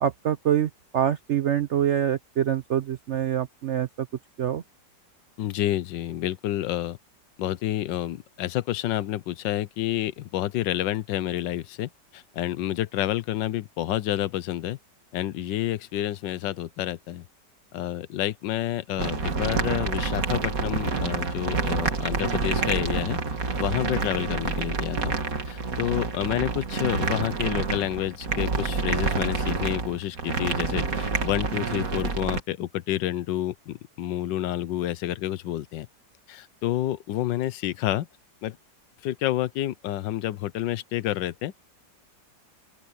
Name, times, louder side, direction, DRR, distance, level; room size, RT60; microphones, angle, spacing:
voice 1, 0.0-4.1 4.4-4.6, right 10 dB, 75° right, 0.6 m, -25 dB
voice 2, 5.4-7.0 7.4-14.8 15.1-17.2 17.7-23.2 23.6-25.1 25.5-35.9 36.3-38.1 38.4-38.6 39.0-41.5, left 13 dB, 80° left, 1.4 m, -29 dB
sound 1, 19.0-32.4, right 4 dB, 50° right, 2.3 m, -28 dB
open air
omnidirectional pair, 2.0 m